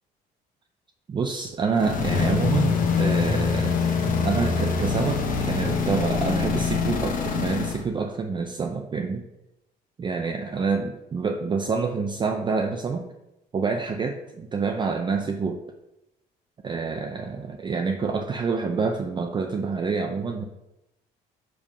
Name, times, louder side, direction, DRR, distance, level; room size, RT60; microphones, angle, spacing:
voice 1, 1.1-3.7 4.2-9.2 10.0-13.1 13.5-15.6 16.6-20.4, right 4 dB, 30° right, 3 dB, 0.5 m, -27 dB
sound 1, 1.7-7.8, left 5 dB, 55° left, 1.0 m, -24 dB
5.2 x 3.5 x 5.4 m, 0.91 s
cardioid pair, 110°, 17 cm